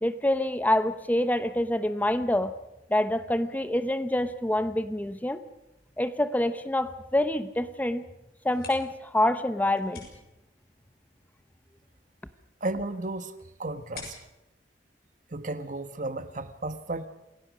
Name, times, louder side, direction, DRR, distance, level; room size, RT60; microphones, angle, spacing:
voice 1, 0.0-2.5 2.9-5.4 6.0-8.0 8.4-10.1, left 1 dB, 10° left, 11 dB, 0.8 m, -26 dB
sound 1, 8.3-15.8, left 4 dB, 60° left, 7.0 m, -51 dB
voice 2, 12.6-14.2 15.3-17.1, right 2 dB, 45° right, 11 dB, 1.3 m, -34 dB
27.5 x 17.5 x 6.3 m, 0.91 s
head